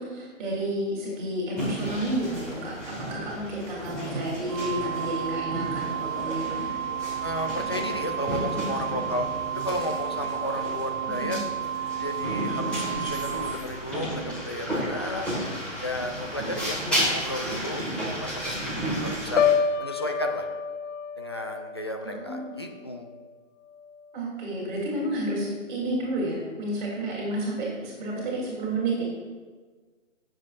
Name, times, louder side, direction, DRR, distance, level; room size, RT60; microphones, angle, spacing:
voice 1, 0.0-2.7 3.1-6.7 22.0-22.6 24.1-29.0, right 1 dB, 40° right, -4 dB, 3.1 m, -31 dB
sound 1, 1.6-19.5, right 1 dB, 5° left, 1.8 m, -33 dB
Preset Pearl-Drop C, 4.5-13.5, right 9 dB, 15° right, 0.7 m, -32 dB
voice 2, 7.2-11.4 12.0-15.3 15.8-19.4 19.8-20.5 21.2-23.1, left 1 dB, 20° left, 3 dB, 0.4 m, -33 dB
Piano, 19.4-23.3 23.7-24.1, left 7 dB, 70° left, 0.6 m, -28 dB
18.0 x 7.5 x 2.5 m, 1.4 s
figure-of-eight pair, 150°, 39 cm